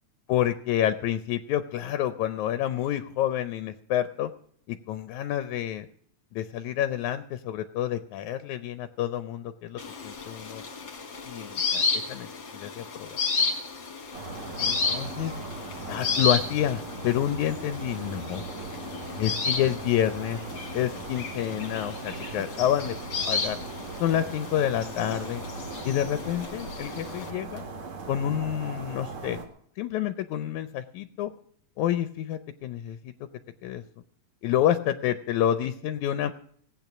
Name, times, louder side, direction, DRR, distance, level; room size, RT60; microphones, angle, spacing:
voice 1, 0.3-4.3 4.7-5.9 6.3-10.6 11.3-12.3 12.5-13.2 14.6-15.3 15.9-18.4 19.2-20.4 20.7-23.0 23.3-23.6 24.0-25.4 25.8-27.7 28.1-29.4 29.8-31.3 31.8-33.0 33.6-33.8 34.4-36.3, left 11 dB, 80° left, 11 dB, 2.0 m, -28 dB
sound 1, 9.8-27.3, left 4 dB, 45° left, 2.2 m, -33 dB
sound 2, 14.1-29.5, right 4 dB, 65° right, 3.2 m, -39 dB
18.0 x 8.8 x 6.0 m, 0.64 s
omnidirectional pair, 3.4 m